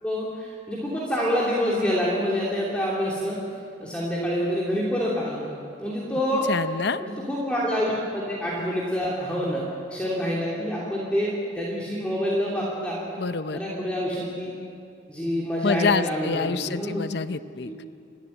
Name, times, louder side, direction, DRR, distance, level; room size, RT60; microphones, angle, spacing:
voice 1, 0.0-3.4 3.8-5.5 5.8-6.5 7.0-13.0 13.5-14.5 15.1-17.0 17.6-17.7, equal, 5° left, -6 dB, 3.0 m, -27 dB
voice 2, 6.5-7.0 13.2-13.6 15.6-17.9, left 4 dB, 60° left, 12 dB, 0.6 m, -27 dB
28.0 x 12.5 x 9.9 m, 2.4 s
head